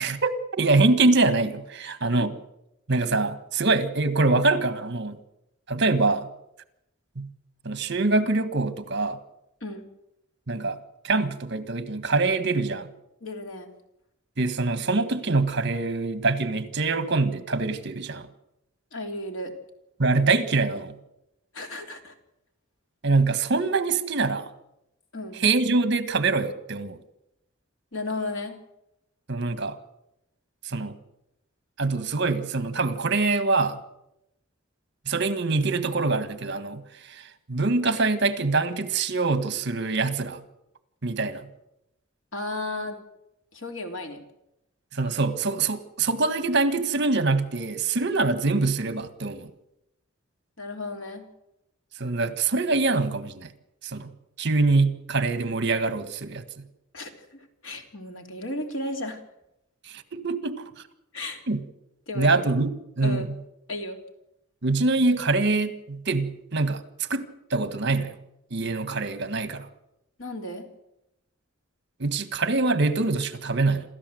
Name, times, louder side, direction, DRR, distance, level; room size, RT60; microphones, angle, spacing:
voice 1, 0.0-2.3 2.9-5.2 5.7-6.3 7.1-7.3 7.6-9.2 10.5-10.8 11.0-12.9 14.4-18.3 20.0-20.9 23.0-24.5 25.4-27.0 29.3-29.8 30.6-30.9 31.8-33.8 35.1-40.4 41.0-41.4 44.9-49.5 52.0-53.5 53.8-54.1 54.4-56.6 59.8-60.6 61.5-61.6 62.1-62.7 63.0-63.4 64.6-68.2 68.5-69.7 72.0-73.8, right 3 dB, 60° right, 12 dB, 1.6 m, -24 dB
voice 2, 13.2-13.7 18.9-19.5 21.5-22.1 25.1-25.4 27.9-28.6 42.3-43.0 43.5-44.2 50.6-51.3 56.9-59.2 61.1-61.4 62.1-62.3 63.0-63.3 63.7-64.0 70.2-70.7, left 2 dB, 70° left, 4 dB, 3.2 m, -34 dB
27.5 x 13.5 x 7.8 m, 0.86 s
head